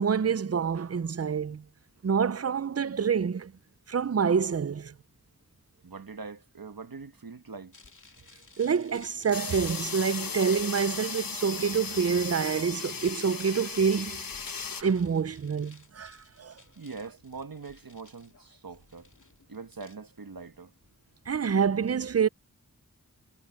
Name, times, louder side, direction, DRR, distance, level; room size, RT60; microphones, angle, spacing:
voice 1, 0.0-1.6 2.0-3.5 3.9-4.9 8.6-14.2 14.8-16.5 21.3-22.3, right 6 dB, 45° right, 0.5 m, -27 dB
voice 2, 5.8-7.7 16.8-19.1 19.5-20.7, right 4 dB, 80° right, 1.5 m, -43 dB
sound 1, 7.7-21.7, left 3 dB, 60° left, 2.3 m, -56 dB
sound 2, 9.3-14.8, left 5 dB, 75° left, 1.1 m, -36 dB
wide cardioid pair, 55°, 35 cm